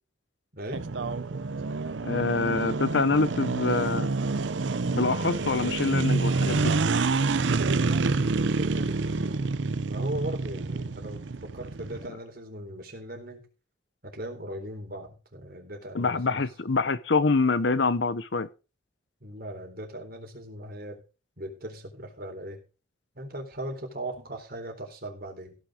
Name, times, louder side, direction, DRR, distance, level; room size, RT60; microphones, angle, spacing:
voice 1, 0.5-0.9 7.7-13.5 14.0-16.4 19.2-21.0 21.4-22.6 23.1-25.6, right 1 dB, 50° right, 3.9 m, -39 dB
sound 1, 0.7-12.1, right 3 dB, 70° right, 0.7 m, -27 dB
voice 2, 2.1-4.1 4.9-6.7 15.9-18.5, left 3 dB, 65° left, 0.8 m, -25 dB
16.5 x 6.4 x 5.0 m
head